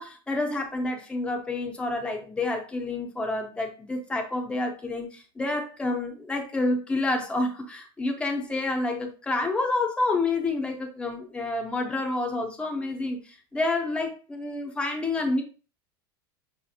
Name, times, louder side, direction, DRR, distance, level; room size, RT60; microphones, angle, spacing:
voice 1, 0.0-15.4, left 2 dB, 10° left, 0.6 m, -29 dB
5.6 x 2.4 x 2.7 m
supercardioid pair, 165°, 12 cm